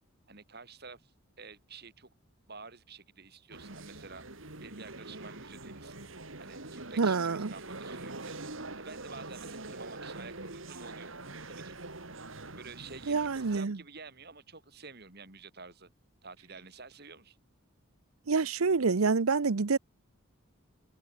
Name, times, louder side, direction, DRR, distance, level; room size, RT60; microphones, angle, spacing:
voice 1, 0.3-1.1 1.4-2.1 2.5-4.2 4.6-6.0 6.4-8.4 8.8-11.1 11.5-11.8 12.6-15.9 16.2-17.4, right 4 dB, 50° right, 3.0 m, -49 dB
sound 1, 3.5-13.6, right 2 dB, 70° right, 3.5 m, -44 dB
voice 2, 7.0-7.5 13.1-13.8 18.3-19.8, right 4 dB, 85° right, 0.8 m, -27 dB
open air
head